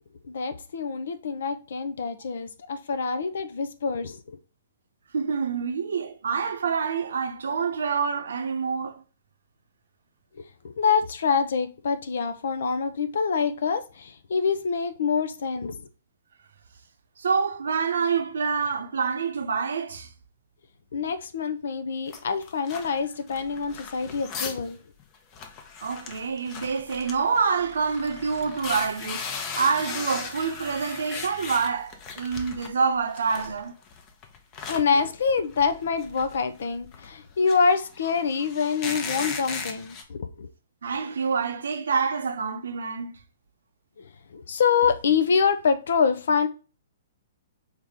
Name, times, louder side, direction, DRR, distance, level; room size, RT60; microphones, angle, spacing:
voice 1, 0.2-4.4 10.6-15.9 20.9-24.8 34.7-40.5 44.0-44.1 44.3-46.5, left 5 dB, 70° left, 0.5 m, -26 dB
voice 2, 5.1-9.0 17.2-20.1 25.8-29.2 29.5-33.7 40.8-43.2, right 5 dB, 75° right, 0.7 m, -27 dB
sound 1, 22.1-24.7 25.0-25.1 25.3-32.7 33.1-40.0, left 5 dB, 35° left, 0.7 m, -38 dB
4.6 x 2.9 x 3.5 m
hypercardioid pair, 125°, 0 cm